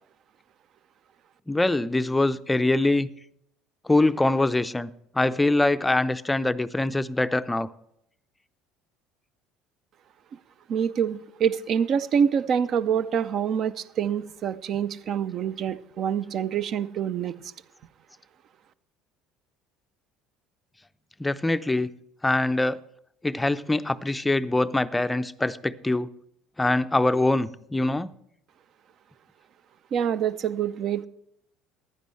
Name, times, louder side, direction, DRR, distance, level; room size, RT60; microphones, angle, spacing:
voice 1, 1.5-3.1 3.8-7.7 21.2-21.9 22.2-22.8 23.2-26.1 26.6-28.1, left 2 dB, 10° left, 13 dB, 0.5 m, -23 dB
voice 2, 10.7-17.5 29.9-31.1, right 8 dB, 45° right, 15 dB, 0.5 m, -26 dB
15.0 x 10.5 x 3.2 m, 0.74 s
figure-of-eight pair, 60°, 0 cm